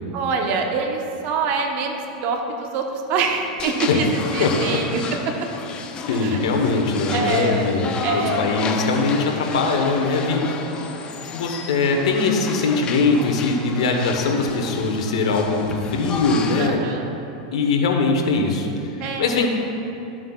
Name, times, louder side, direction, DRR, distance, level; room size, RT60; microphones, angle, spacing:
voice 1, 0.1-5.3 6.1-6.4 7.1-8.6 16.6-17.1 19.0-19.5, right 4 dB, 50° right, 3 dB, 1.1 m, -25 dB
sound 1, 3.6-16.7, left 5 dB, 30° left, 0.6 m, -32 dB
voice 2, 6.1-10.6 11.3-16.8 17.5-18.9 19.2-19.5, left 4 dB, 80° left, 2 dB, 1.1 m, -21 dB
12.5 x 7.5 x 2.4 m, 2.8 s
supercardioid pair, 125°, 3 cm